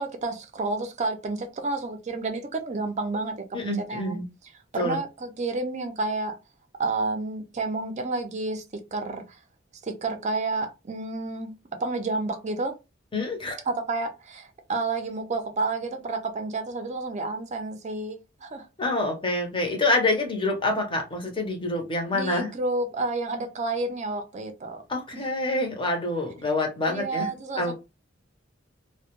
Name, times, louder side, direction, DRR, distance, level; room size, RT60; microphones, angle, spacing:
voice 1, 0.0-4.2 4.7-6.4 6.8-9.4 9.8-12.8 13.7-18.7 22.1-24.8 25.1-25.2 26.9-27.7, right 3 dB, 35° right, 0.5 m, -30 dB
voice 2, 3.5-4.2 4.7-5.0 13.1-13.6 18.8-22.5 24.9-27.3 27.6-27.7, left 2 dB, 25° left, 0.7 m, -26 dB
2.1 x 2.1 x 2.9 m
head